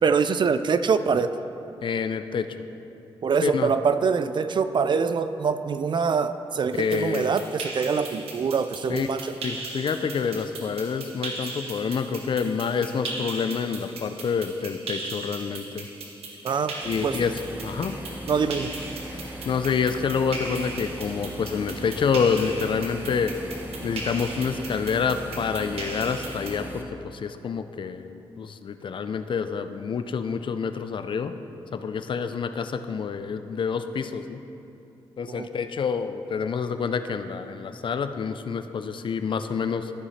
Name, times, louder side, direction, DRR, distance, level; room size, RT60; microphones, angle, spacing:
voice 1, 0.0-1.3 3.2-9.3 16.4-16.7 17.0-17.2 18.3-18.7 35.3-35.5, right 5 dB, 50° right, 12 dB, 0.4 m, -24 dB
voice 2, 1.8-2.5 3.4-3.7 6.7-7.3 8.9-9.1 9.4-15.9 16.8-18.0 19.5-23.3 23.8-31.3 31.7-34.4 35.2-39.9, left 6 dB, 55° left, 9 dB, 0.5 m, -27 dB
sound 1, 6.7-26.5, right 3 dB, 85° right, 1.2 m, -38 dB
sound 2, 16.8-26.8, equal, 20° right, 1.1 m, -38 dB
13.5 x 4.9 x 4.2 m, 2.8 s
cardioid pair, 70°, 10 cm